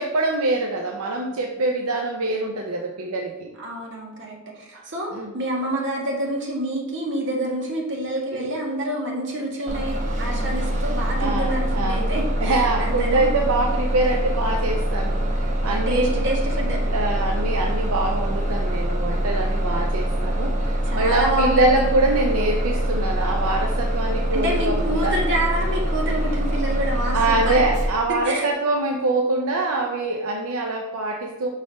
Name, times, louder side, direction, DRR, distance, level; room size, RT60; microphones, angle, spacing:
voice 1, 0.0-3.5 5.1-5.3 8.3-8.5 11.2-12.0 12.4-16.2 16.9-25.1 27.1-31.5, right 2 dB, 80° right, 1 dB, 0.7 m, -24 dB
voice 2, 3.6-13.3 15.6-16.8 19.3-19.6 20.9-21.8 24.3-27.6 28.2-28.5, right 1 dB, 60° right, -2 dB, 1.8 m, -27 dB
Bus, 9.7-27.8, right 1 dB, 35° right, 1.0 m, -24 dB
6.3 x 4.0 x 5.2 m, 1.1 s
head